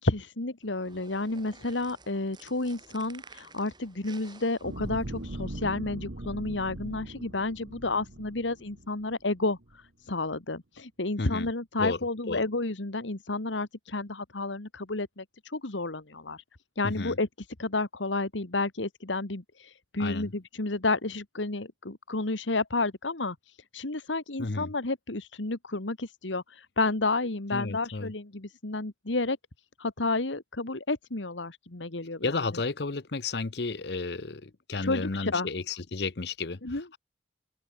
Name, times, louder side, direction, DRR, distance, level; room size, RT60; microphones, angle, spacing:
voice 1, 0.0-16.4 16.8-29.4 29.8-32.4 34.8-35.5 36.6-36.9, left 2 dB, 90° left, 1.9 m, -31 dB
sound 1, 0.6-5.6, right 4 dB, 25° right, 7.6 m, -53 dB
sound 2, 4.6-9.1 9.6-9.7, right 1 dB, 75° right, 1.7 m, -40 dB
voice 2, 11.2-11.5 11.8-12.0 12.3-12.4 16.8-17.1 20.0-20.3 24.4-24.7 27.5-28.1 32.2-36.6, left 3 dB, 60° left, 0.9 m, -32 dB
head